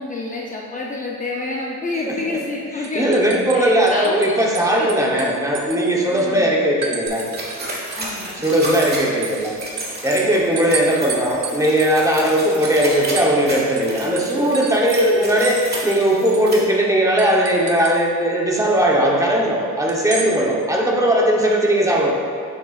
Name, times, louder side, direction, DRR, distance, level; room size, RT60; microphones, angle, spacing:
voice 1, 0.0-3.2 3.5-4.3 4.8-5.3 6.1-6.5 8.0-8.4 10.2-10.6 21.4-21.8, left 2 dB, 25° left, -3 dB, 0.6 m, -29 dB
voice 2, 2.1-2.4 2.9-7.2 8.4-9.5 10.0-22.1, right 1 dB, 10° right, -2 dB, 0.9 m, -18 dB
sound 1, 2.3-2.5 2.8-4.3 4.5-6.3 6.8-7.6 7.9-13.5 13.8-13.9 14.2-15.6 15.9-16.0 16.3-16.5 17.2-18.0 19.9-20.3, right 6 dB, 80° right, 0.9 m, -32 dB
sound 2, 7.1-16.5, right 1 dB, 30° right, 1.5 m, -32 dB
7.8 x 6.7 x 2.4 m, 2.3 s
cardioid pair, 125°, 34 cm